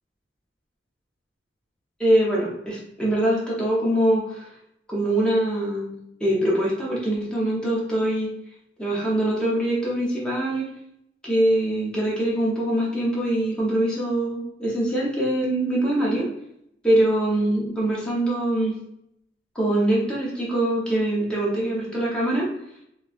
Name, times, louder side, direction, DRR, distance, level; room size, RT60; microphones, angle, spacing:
voice 1, 2.0-4.5 4.9-5.9 6.2-8.3 8.8-10.7 11.2-16.3 16.8-18.8 19.5-22.5, right 1 dB, 5° left, -6 dB, 0.7 m, -23 dB
4.0 x 2.3 x 2.4 m, 0.76 s
head